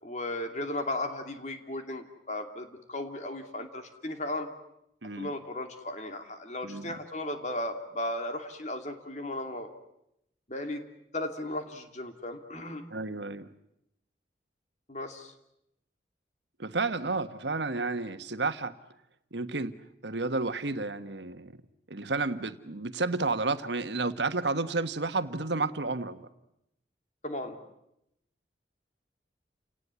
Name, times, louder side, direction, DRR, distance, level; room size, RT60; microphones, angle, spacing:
voice 1, 0.0-4.5 5.2-9.7 10.5-10.8 11.1-12.8 14.9-15.3 27.2-27.6, left 1 dB, 40° left, 6 dB, 2.7 m, -36 dB
voice 2, 6.6-6.9 12.9-13.5 16.6-18.7 19.3-19.7 20.0-21.5 21.9-26.2, right 3 dB, 85° right, 10 dB, 1.4 m, -31 dB
29.5 x 18.5 x 9.7 m, 0.83 s
head